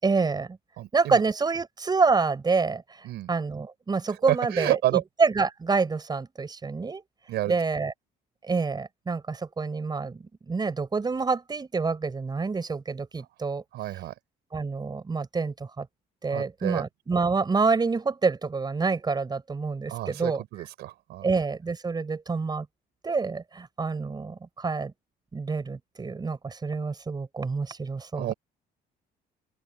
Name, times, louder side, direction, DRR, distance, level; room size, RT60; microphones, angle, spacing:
voice 1, 0.0-0.6 0.9-7.0 7.5-7.9 8.4-13.6 14.5-15.9 16.2-20.4 21.2-22.7 23.0-24.9 25.3-28.3, right 4 dB, 25° right, 5.1 m, -27 dB
voice 2, 0.8-1.2 3.0-3.3 4.3-5.0 7.3-7.5 13.7-14.1 16.3-16.8 19.9-21.3 28.2-28.3, right 15 dB, 80° right, 6.1 m, -29 dB
open air
cardioid pair, 110°, 17 cm